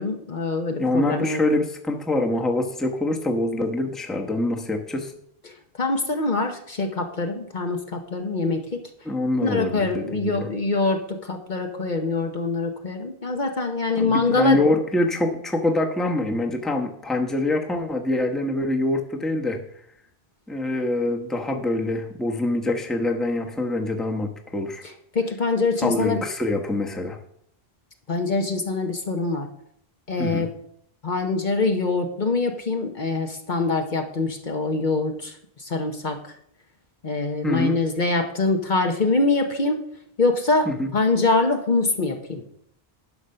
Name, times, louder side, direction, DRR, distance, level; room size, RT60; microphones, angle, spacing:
voice 1, 0.0-1.4 5.8-8.8 9.3-14.6 25.1-26.2 28.1-29.5 30.1-30.5 31.0-36.3 37.0-39.8 40.2-42.4, left 3 dB, 50° left, 4 dB, 1.1 m, -24 dB
voice 2, 0.8-5.1 9.0-10.5 13.9-19.6 20.5-24.8 25.8-27.2 30.2-30.5 37.4-37.8 40.6-40.9, left 2 dB, ahead, 2 dB, 1.0 m, -25 dB
10.5 x 6.5 x 5.6 m, 0.70 s
omnidirectional pair, 1.0 m